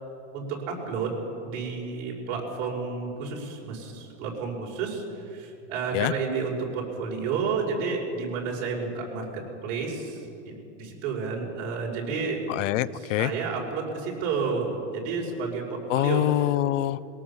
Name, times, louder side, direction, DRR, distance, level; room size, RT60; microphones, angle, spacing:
voice 1, 0.3-1.1 1.4-5.0 5.3-12.4 12.9-16.3, right 5 dB, 50° right, -2 dB, 5.4 m, -31 dB
voice 2, 12.5-13.3 15.9-17.0, left 15 dB, 85° left, 19 dB, 0.8 m, -25 dB
21.5 x 18.0 x 7.2 m, 2.8 s
supercardioid pair, 165°, 37 cm